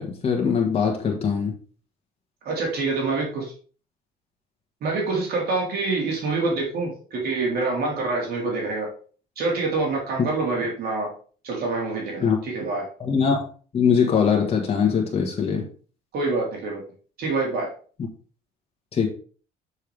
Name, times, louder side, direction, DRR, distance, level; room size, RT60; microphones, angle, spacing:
voice 1, 0.0-1.5 12.2-12.4 13.0-13.4 13.7-15.7 18.9-19.1, left 6 dB, 35° left, 0 dB, 1.5 m, -22 dB
voice 2, 2.4-3.5 4.8-8.9 9.4-11.1 11.4-12.9 16.1-16.8 17.2-17.7, right 3 dB, 65° right, -2 dB, 3.3 m, -26 dB
6.9 x 5.7 x 3.4 m, 0.41 s
cardioid pair, 110°, 17 cm